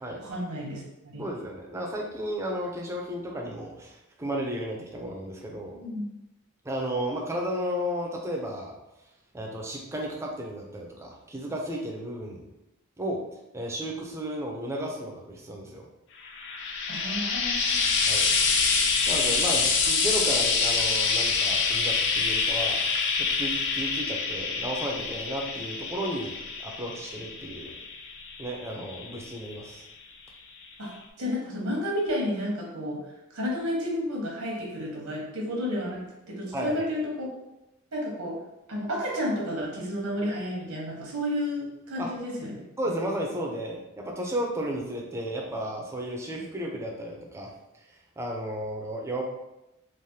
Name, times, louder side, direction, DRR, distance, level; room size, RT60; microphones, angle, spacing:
voice 1, 0.2-1.2 5.7-6.0 16.9-17.9 30.8-33.0 33.3-37.3 37.9-38.4 38.7-42.6, equal, 85° right, -3 dB, 0.9 m, -31 dB
voice 2, 1.2-5.8 6.6-8.7 9.3-12.4 13.0-13.2 13.5-15.9 18.1-18.3 19.1-22.8 23.2-27.8 28.4-29.8 36.5-36.8 42.0-42.1 42.8-47.5 48.2-49.2, equal, 15° right, -1 dB, 0.4 m, -33 dB
Frying (food), 16.2-29.7 30.6-30.7, left 4 dB, 55° left, 0.4 m, -26 dB
3.2 x 2.0 x 2.7 m, 0.92 s
head